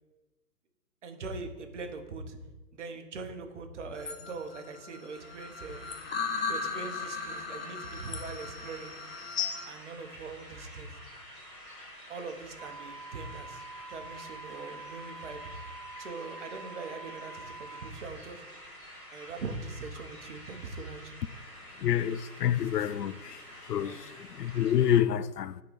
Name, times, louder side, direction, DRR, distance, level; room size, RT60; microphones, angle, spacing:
voice 1, 1.0-2.4 2.7-5.9 6.5-8.9 9.6-10.9 12.1-13.6 13.9-15.4 16.0-18.4 19.1-21.1 23.7-24.1, right 4 dB, 50° right, 1.2 m, -41 dB
sound 1, 3.9-9.7, left 6 dB, 40° left, 0.8 m, -37 dB
sound 2, 5.1-25.0, equal, 15° left, 2.6 m, -49 dB
sound 3, 12.6-17.9, right 3 dB, 80° right, 1.1 m, -46 dB
voice 2, 21.8-23.4 23.7-24.1 24.4-25.6, left 10 dB, 80° left, 0.6 m, -27 dB
8.9 x 4.0 x 5.2 m
hypercardioid pair, 160°, 47 cm